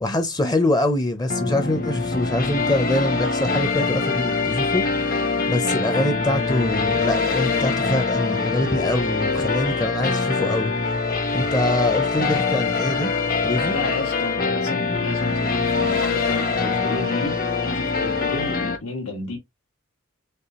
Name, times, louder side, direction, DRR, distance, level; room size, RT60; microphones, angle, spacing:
voice 1, 0.0-10.7 11.3-13.1 13.4-13.7, left 1 dB, 20° left, 0.5 m, -24 dB
sound 1, 1.3-18.8, left 4 dB, 40° left, 0.9 m, -23 dB
voice 2, 13.7-19.4, left 2 dB, 90° left, 1.9 m, -32 dB
6.6 x 2.3 x 2.9 m
head